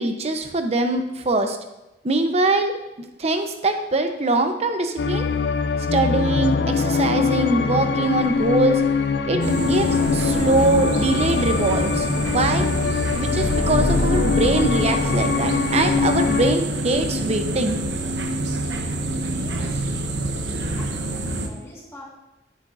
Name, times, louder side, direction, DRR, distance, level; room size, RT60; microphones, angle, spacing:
voice 1, 0.0-1.6 2.0-2.7 3.2-5.2 5.9-8.8 9.3-12.7 13.1-17.8, right 2 dB, 40° right, 6 dB, 0.8 m, -22 dB
sound 1, 5.0-16.6, left 5 dB, 70° left, 0.5 m, -22 dB
sound 2, 9.4-21.5, right 1 dB, 85° right, 0.9 m, -27 dB
voice 2, 19.3-19.8 20.8-22.0, left 1 dB, 15° left, -6 dB, 1.7 m, -41 dB
9.9 x 8.9 x 2.6 m, 0.97 s
head